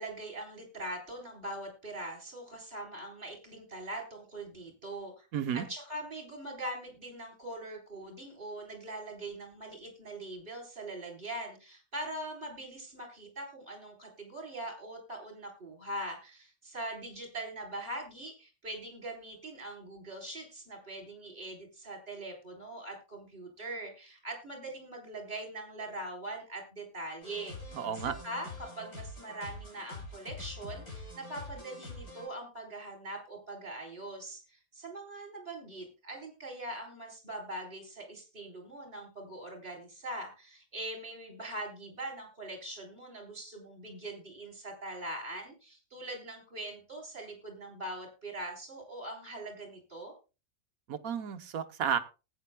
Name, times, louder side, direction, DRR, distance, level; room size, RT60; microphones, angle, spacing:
voice 1, 0.0-5.3 5.5-50.1, right 1 dB, 35° right, 1 dB, 4.3 m, -42 dB
voice 2, 5.3-5.6 27.7-28.1 50.9-52.0, right 8 dB, 75° right, 8 dB, 1.4 m, -32 dB
sound 1, 27.2-32.3, left 2 dB, 80° left, 5.3 m, -45 dB
19.5 x 9.1 x 2.2 m, 0.30 s
omnidirectional pair, 1.5 m